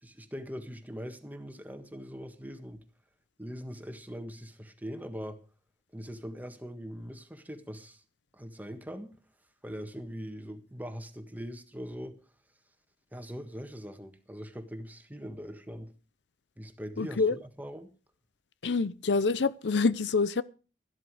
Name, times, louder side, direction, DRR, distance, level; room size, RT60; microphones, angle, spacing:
voice 1, 0.0-2.8 3.4-5.4 5.9-8.0 8.3-9.2 9.6-12.2 13.1-15.9 16.6-17.9, equal, 10° right, 1.6 m, -41 dB
voice 2, 17.0-17.3 18.6-20.4, left 4 dB, 80° left, 0.6 m, -26 dB
13.5 x 12.0 x 4.9 m
head